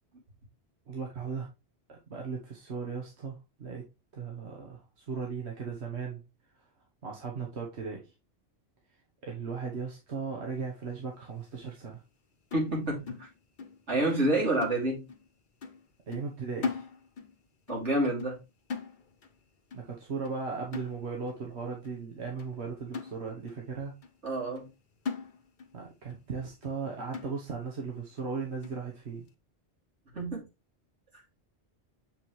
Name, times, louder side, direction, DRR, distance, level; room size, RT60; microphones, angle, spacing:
voice 1, 0.9-1.5 1.9-3.8 4.1-6.2 7.0-8.0 9.2-12.0 16.1-16.8 19.7-23.9 25.7-29.2, right 5 dB, 70° right, 0 dB, 1.6 m, -37 dB
sound 1, 12.5-13.8 14.1-14.3 14.6-15.3 15.6-15.8 16.1-17.4 17.7-17.9 18.2-18.4 18.7-19.4 19.7-19.9 20.2-20.4 20.7-21.4 21.8-22.0 22.4-22.5 22.9-23.6 24.0-24.1 24.6-24.7 25.0-25.8 26.1-26.2 26.6-26.8 27.1-27.7 28.2-28.3 28.6-28.9, left 5 dB, 50° left, 1.0 m, -40 dB
voice 2, 12.5-13.3 13.9-15.0 17.7-18.4 24.2-24.7 30.1-30.4, right 1 dB, 90° right, -2 dB, 3.4 m, -28 dB
7.2 x 5.3 x 3.2 m, 0.25 s
omnidirectional pair, 1.2 m